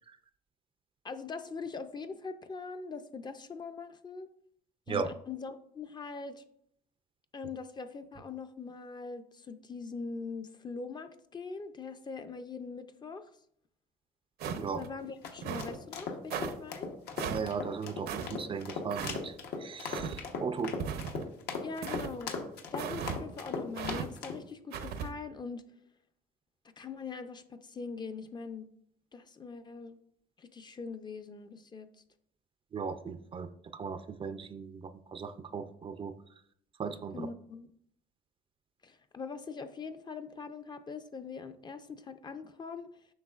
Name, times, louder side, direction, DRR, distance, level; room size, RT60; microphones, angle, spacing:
voice 1, 1.0-4.3 4.9-6.4 7.3-13.3 14.8-16.9 21.6-22.4 22.7-25.6 26.8-28.7 29.1-30.0 30.4-31.9 37.1-37.7 38.8-42.9, left 4 dB, 25° left, 9 dB, 0.5 m, -42 dB
Footsteps Mountain Boots Snow Walk Mono, 14.4-14.9 15.4-15.8 16.3-16.5 17.2-17.5 18.1-18.3 18.9-19.2 19.9-20.2 20.8-21.3 21.8-22.1 22.8-23.2 23.8-24.1 24.7-25.1, right 7 dB, 70° right, 0.7 m, -37 dB
sound 1, 15.0-24.4, left 4 dB, 75° left, 1.0 m, -38 dB
voice 2, 17.3-20.7 32.7-36.4 36.8-37.3, right 5 dB, 30° right, 11 dB, 0.4 m, -37 dB
7.8 x 5.5 x 2.4 m, 0.68 s
cardioid pair, 110°, 17 cm